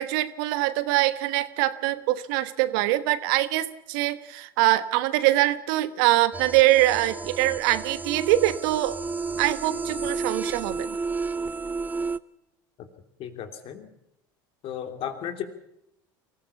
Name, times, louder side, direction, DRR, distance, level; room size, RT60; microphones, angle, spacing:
voice 1, 0.0-9.0 9.4-11.0, right 16 dB, 70° right, 14 dB, 1.2 m, -23 dB
sound 1, 6.3-12.2, right 4 dB, 15° right, 0.7 m, -32 dB
voice 2, 13.2-13.9 14.6-15.4, left 9 dB, 55° left, 7 dB, 3.0 m, -34 dB
24.0 x 15.5 x 7.1 m, 0.80 s
hypercardioid pair, 85°, 11 cm